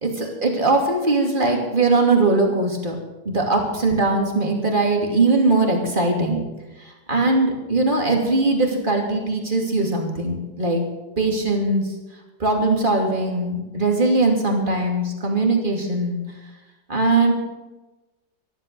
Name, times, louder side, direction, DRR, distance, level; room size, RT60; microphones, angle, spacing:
voice 1, 0.0-3.0 3.2-6.5 6.8-10.8 11.2-11.9 12.4-16.2 16.9-17.3, right 2 dB, 30° right, 1 dB, 2.8 m, -20 dB
14.0 x 12.0 x 6.8 m, 1.1 s
omnidirectional pair, 1.8 m